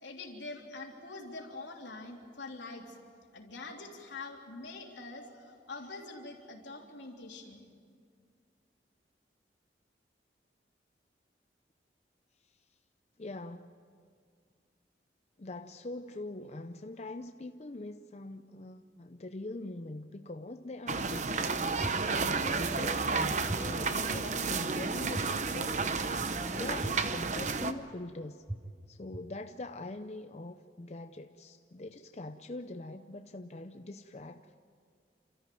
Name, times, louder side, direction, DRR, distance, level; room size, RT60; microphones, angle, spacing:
voice 1, 0.0-3.0 3.3-7.6, left 3 dB, 85° left, 0 dB, 3.3 m, -45 dB
voice 2, 13.2-13.7 15.4-25.8 26.6-28.4 28.9-34.6, left 2 dB, 35° left, 7 dB, 0.6 m, -43 dB
sound 1, 20.9-27.7, right 4 dB, 40° right, 0.8 m, -32 dB
sound 2, 21.8-21.9 22.5-22.6 23.5-23.6 24.1-24.2 25.1-25.2 25.8-25.9 26.8-26.9 27.5-27.6 28.5-28.6 29.1-29.2, right 1 dB, 15° right, 0.8 m, -36 dB
28.5 x 14.0 x 9.3 m, 2.1 s
head